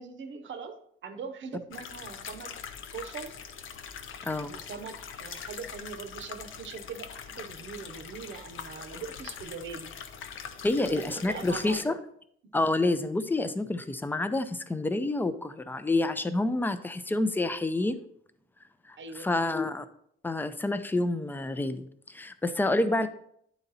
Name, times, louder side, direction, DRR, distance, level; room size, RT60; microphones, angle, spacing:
voice 1, 0.0-2.5 2.9-3.3 4.5-9.9 10.7-12.0 19.0-19.5 22.5-23.1, right 5 dB, 65° right, 8 dB, 0.8 m, -42 dB
sound 1, 1.7-11.8, left 7 dB, 75° left, 0.6 m, -43 dB
voice 2, 10.6-12.0 12.5-18.1 19.2-19.8 20.2-23.1, left 2 dB, 10° left, 11 dB, 0.4 m, -28 dB
9.9 x 4.0 x 4.0 m, 0.68 s
wide cardioid pair, 160°, 21 cm